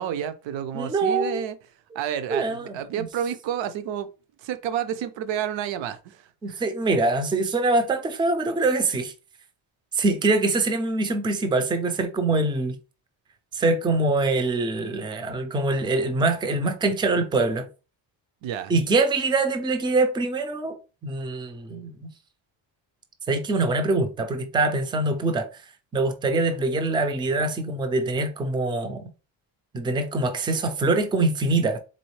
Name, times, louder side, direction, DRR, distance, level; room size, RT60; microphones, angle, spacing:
voice 1, 0.0-1.6 1.9-4.1 4.4-6.6 18.4-18.7, right 9 dB, 70° right, 0.6 m, -30 dB
voice 2, 0.7-1.4 2.3-3.1 6.4-9.1 9.9-12.8 13.5-17.7 18.7-20.8 21.0-22.0 23.3-25.5 25.9-29.1 29.7-31.8, right 2 dB, 10° right, 0.3 m, -24 dB
4.1 x 3.5 x 3.1 m
cardioid pair, 165°, 47 cm